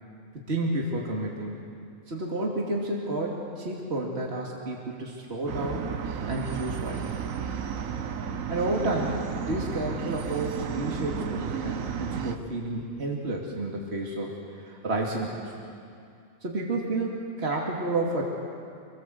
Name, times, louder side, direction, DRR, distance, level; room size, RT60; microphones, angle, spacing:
voice 1, 0.5-1.6 2.1-5.9 6.3-7.0 8.5-15.4 16.4-18.2, right 2 dB, 50° right, -2 dB, 2.7 m, -30 dB
sound 1, 5.5-12.4, right 7 dB, 75° right, 1.4 m, -33 dB
26.0 x 18.0 x 7.8 m, 2.4 s
omnidirectional pair, 1.4 m